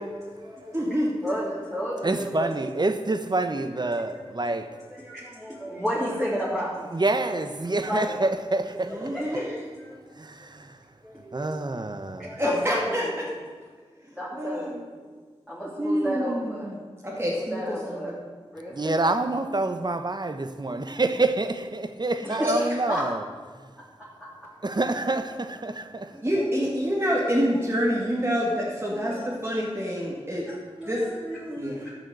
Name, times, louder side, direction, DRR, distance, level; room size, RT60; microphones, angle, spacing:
voice 1, 0.0-1.0 1.2-2.7 3.8-3.9 4.9-7.0 7.7-8.2 8.9-10.0 11.0-11.5 11.9-13.4 14.0-15.2 15.5-16.8 17.3-18.2 18.5-19.2 22.2-23.1 23.8-24.5 26.1-26.2 28.9-29.3 30.4-31.9, equal, ahead, 3.4 m, -33 dB
voice 2, 0.7-1.1 8.9-9.5 12.4-13.0 14.4-14.7 15.8-16.7 17.0-18.1 22.4-22.5 26.2-29.1 29.4-30.4 30.9-31.0 31.6-31.8, equal, 20° right, 2.4 m, -26 dB
voice 3, 2.0-4.7 6.9-9.1 10.2-10.8 11.3-12.3 18.7-23.2 24.6-26.2, right 2 dB, 40° right, 1.0 m, -27 dB
13.0 x 6.2 x 7.6 m
wide cardioid pair, 55°, 11 cm